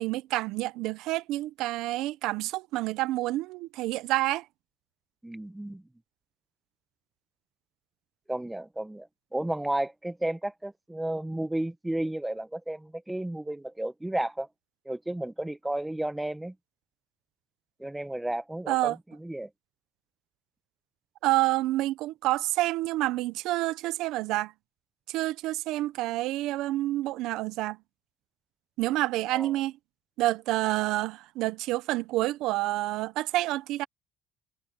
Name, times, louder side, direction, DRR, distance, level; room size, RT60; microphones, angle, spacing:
voice 1, 0.0-4.4 18.7-19.0 21.2-24.5 25.1-27.8 28.8-29.7 30.2-33.8, right 17 dB, 80° right, 0.8 m, -28 dB
voice 2, 5.2-5.8 8.3-14.5 14.8-16.5 17.8-19.5 29.3-29.5, right 1 dB, 10° right, 1.0 m, -33 dB
cardioid pair, 100°, 0 cm